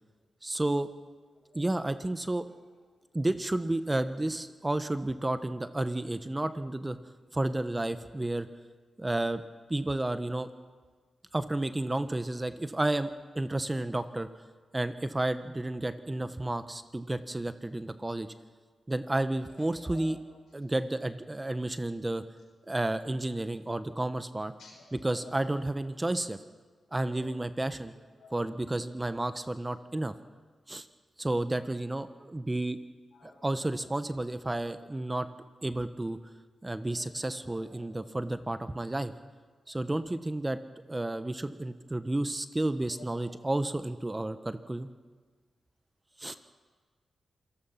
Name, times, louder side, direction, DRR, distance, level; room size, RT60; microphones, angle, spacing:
voice 1, 0.4-0.9 1.5-2.4 3.1-7.0 7.3-8.5 9.0-9.4 9.7-10.5 11.3-13.1 13.3-14.3 14.7-18.3 18.9-20.2 20.5-22.2 22.7-24.5 24.9-26.4 26.9-27.9 28.3-30.1 30.7-30.9 31.2-32.8 33.2-35.3 35.6-36.2 36.6-39.1 39.7-40.6 40.9-44.9 46.2-46.4, right 1 dB, 20° right, 11 dB, 1.2 m, -31 dB
voice 2, 1.5-1.6 19.9-20.1 24.6-24.8 27.1-27.3 28.2-28.3 33.1-33.4 36.9-37.0 37.9-38.0, left 4 dB, 80° left, 0 dB, 6.4 m, -52 dB
27.5 x 16.0 x 5.9 m, 1.5 s
supercardioid pair, 45°, 0 cm